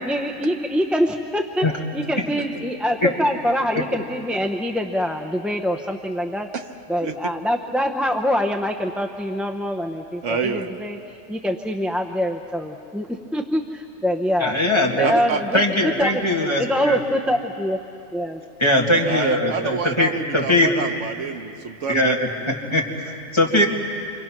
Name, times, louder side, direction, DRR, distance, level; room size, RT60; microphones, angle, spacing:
voice 1, 0.0-1.7 1.9-6.5 6.9-11.0 11.3-14.5 15.0-16.2 16.6-17.8 18.1-18.4, equal, ahead, 3 dB, 0.6 m, -24 dB
voice 2, 10.2-10.7 15.0-15.6 19.1-22.2, right 5 dB, 85° right, 7 dB, 1.4 m, -27 dB
voice 3, 14.4-15.1 15.5-17.0 18.6-20.8 21.9-23.7, left 1 dB, 25° left, -1 dB, 2.2 m, -20 dB
29.0 x 25.5 x 6.0 m, 2.7 s
omnidirectional pair, 1.2 m